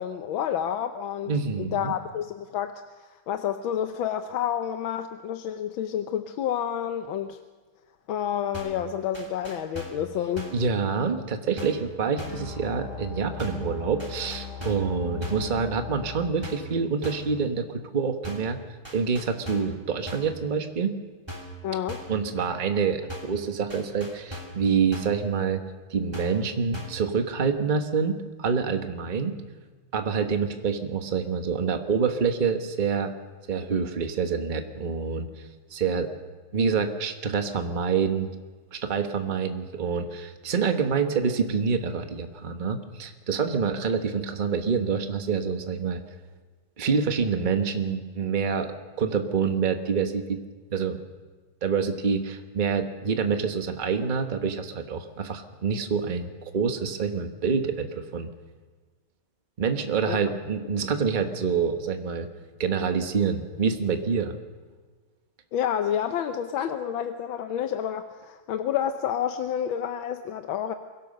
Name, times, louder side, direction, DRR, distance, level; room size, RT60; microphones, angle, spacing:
voice 1, 0.0-7.4 8.1-10.5 21.6-22.0 60.1-60.2 65.5-70.7, left 9 dB, 75° left, 8 dB, 1.5 m, -29 dB
voice 2, 1.3-1.9 10.5-18.6 18.9-21.0 22.1-25.6 25.9-29.3 29.9-33.1 33.5-35.4 35.7-36.1 36.5-38.3 38.7-46.0 46.8-50.4 50.7-51.0 51.6-58.3 59.6-62.3 62.6-64.3, right 5 dB, 30° right, 6 dB, 1.1 m, -27 dB
sound 1, 8.5-8.9 9.1-10.1 10.4-10.7 11.6-11.9 12.2-12.5 13.4-13.7 14.0-14.9 15.2-15.5 16.4-16.7 17.0-17.4 18.2-18.6 18.8-19.8 20.1-20.4 21.3-21.6 21.9-22.2 23.1-23.4 23.7-24.6 24.9-25.2 26.1-26.5 26.7-27.1, equal, 10° right, 2.8 m, -39 dB
sound 2, 12.2-16.3, left 7 dB, 55° left, 2.2 m, -38 dB
23.5 x 16.5 x 6.6 m, 1.4 s
omnidirectional pair, 2.3 m